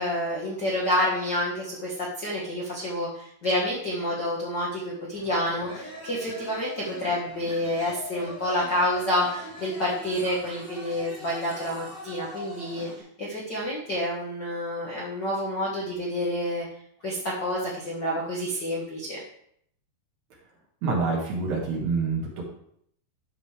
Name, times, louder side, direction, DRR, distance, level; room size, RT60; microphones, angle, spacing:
voice 1, 0.0-12.9 13.2-16.6 17.0-19.2, left 1 dB, 85° left, -5 dB, 0.9 m, -28 dB
sound 1, 5.1-13.0, equal, ahead, 3.2 m, -42 dB
voice 2, 20.8-22.4, right 4 dB, 55° right, -2 dB, 2.5 m, -27 dB
12.5 x 5.3 x 3.4 m, 0.68 s
omnidirectional pair, 4.7 m